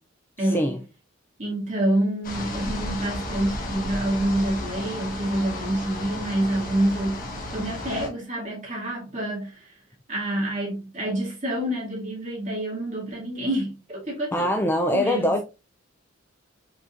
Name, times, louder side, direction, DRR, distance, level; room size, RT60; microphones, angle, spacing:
voice 1, 0.4-0.7 1.4-7.2 7.5-9.7 10.1-14.5 14.9-15.3, right 1 dB, 40° right, 2.3 m, -27 dB
sound 1, 2.2-8.1, left 1 dB, 45° left, 1.3 m, -33 dB
voice 2, 14.3-15.4, left 1 dB, 10° left, 0.3 m, -23 dB
5.0 x 3.9 x 2.5 m
head